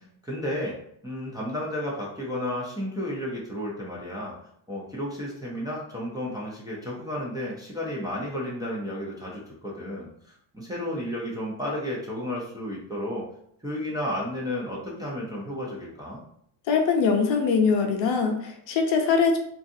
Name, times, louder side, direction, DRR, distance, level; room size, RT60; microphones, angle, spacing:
voice 1, 0.2-0.8 1.0-4.3 4.7-13.2 13.6-16.2, left 1 dB, 10° right, -6 dB, 0.4 m, -32 dB
voice 2, 16.7-19.4, left 5 dB, 65° left, 3 dB, 0.6 m, -22 dB
2.6 x 2.3 x 2.5 m, 0.68 s
cardioid pair, 135°, 47 cm